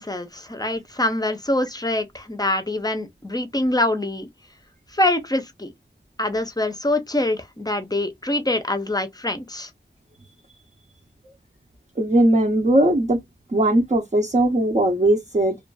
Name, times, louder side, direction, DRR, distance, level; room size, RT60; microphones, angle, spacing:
voice 1, 0.0-4.3 4.9-5.7 6.2-9.7, left 1 dB, 20° left, 0.6 m, -24 dB
voice 2, 12.0-13.2 13.5-15.6, right 1 dB, 35° right, 0.6 m, -19 dB
2.5 x 2.3 x 2.2 m
wide cardioid pair, 45°, 20 cm